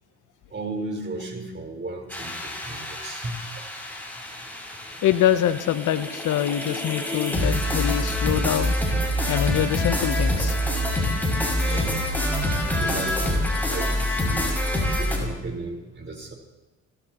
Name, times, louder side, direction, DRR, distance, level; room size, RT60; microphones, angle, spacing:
voice 1, 0.5-3.6 11.5-12.0 12.7-14.6 15.0-16.3, right 2 dB, 30° right, 1 dB, 4.3 m, -35 dB
sound 1, 2.1-15.2, left 1 dB, 5° left, 5.9 m, -26 dB
voice 2, 5.0-8.7 9.3-10.5, left 11 dB, 55° left, 11 dB, 0.8 m, -24 dB
26.5 x 12.5 x 3.0 m, 1.1 s
hypercardioid pair, 65°, 36 cm